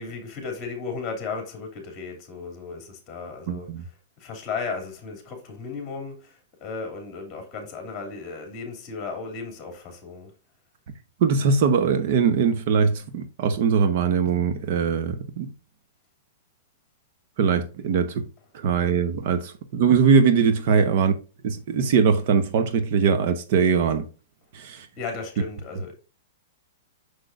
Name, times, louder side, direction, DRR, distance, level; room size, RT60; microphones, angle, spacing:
voice 1, 0.0-10.3 20.7-20.9 25.0-25.9, left 4 dB, 20° left, 2.7 m, -35 dB
voice 2, 3.5-3.8 11.2-15.5 17.4-18.2 18.5-21.2 21.4-24.1 24.5-24.9, right 6 dB, 45° right, 0.9 m, -21 dB
6.5 x 6.1 x 2.5 m
hypercardioid pair, 165°, 0 cm